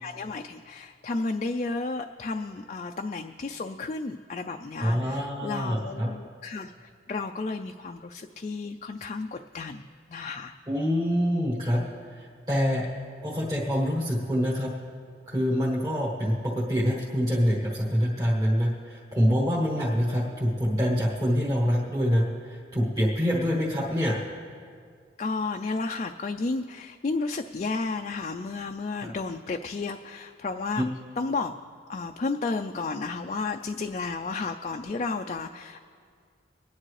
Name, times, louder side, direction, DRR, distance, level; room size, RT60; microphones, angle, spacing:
voice 1, 0.0-9.8 10.1-10.5 25.2-30.9 31.2-31.5 31.9-35.8, left 3 dB, 40° left, 5 dB, 0.4 m, -32 dB
voice 2, 4.8-6.1 10.7-11.8 12.1-12.9 13.2-14.7 15.3-24.2 29.0-29.1 30.8-30.9, equal, 20° right, -6 dB, 1.3 m, -26 dB
25.5 x 10.0 x 3.2 m, 2.2 s
head